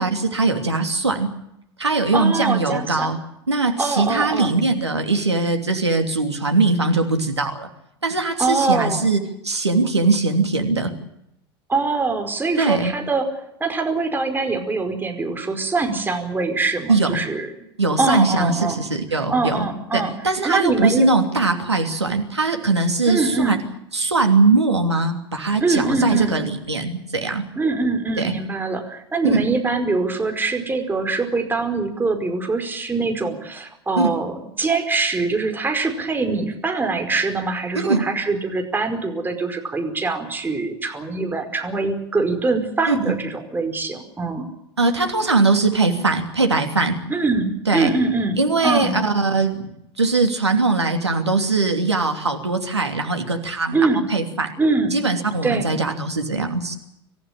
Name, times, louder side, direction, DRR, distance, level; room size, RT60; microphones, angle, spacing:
voice 1, 0.0-1.3 1.8-3.2 3.5-7.7 8.0-10.9 12.6-12.9 16.9-17.2 17.8-19.7 19.9-23.6 23.9-27.4 28.2-28.3 29.2-29.4 34.0-34.1 37.7-38.0 42.9-43.0 44.8-47.0 47.7-47.9 48.4-54.5 54.9-56.8, right 3 dB, 85° right, 5 dB, 2.9 m, -21 dB
voice 2, 2.1-3.1 3.8-4.5 8.4-9.1 11.7-13.3 13.6-17.5 18.0-18.8 19.3-20.1 20.4-21.1 23.1-23.6 25.6-26.3 27.5-44.5 47.1-49.0 53.7-54.0 54.6-55.0 55.4-55.7, right 3 dB, 15° right, 5 dB, 5.0 m, -23 dB
26.0 x 15.0 x 8.9 m, 0.80 s
figure-of-eight pair, 80°, 14 cm